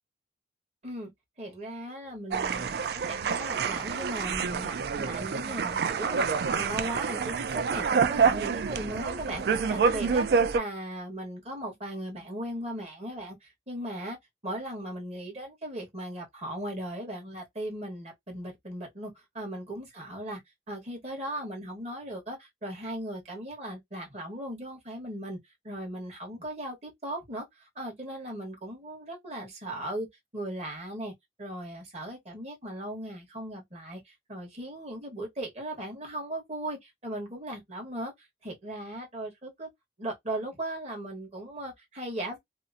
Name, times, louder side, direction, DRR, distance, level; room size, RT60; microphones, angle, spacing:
voice 1, 1.4-6.3 6.5-14.2 14.4-20.4 20.7-25.4 25.6-30.1 30.3-31.1 31.4-39.7 40.0-42.4, right 1 dB, 35° right, 1.2 m, -38 dB
sound 1, 2.3-10.6, right 5 dB, 60° right, 0.3 m, -27 dB
2.8 x 2.0 x 2.4 m
head